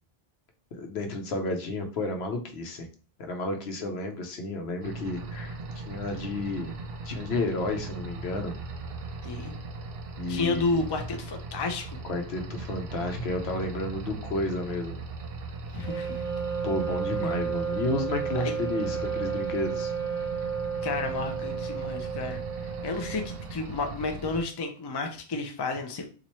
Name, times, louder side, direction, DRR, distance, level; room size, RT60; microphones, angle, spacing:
voice 1, 0.7-2.9 3.2-6.8 7.0-8.5 10.2-10.9 12.0-15.0 16.6-19.9, left 2 dB, 80° left, 5 dB, 1.0 m, -31 dB
sound 1, 4.8-24.4, right 3 dB, 70° right, 0.8 m, -39 dB
voice 2, 9.2-9.5 10.3-12.0 15.7-16.2 17.2-17.5 18.4-18.5 20.8-26.1, left 3 dB, 35° left, 5 dB, 0.4 m, -32 dB
Wind instrument woodwind instrument, 15.7-23.6, right 6 dB, 45° right, 0.9 m, -32 dB
3.0 x 2.5 x 4.2 m, 0.39 s
omnidirectional pair, 1.0 m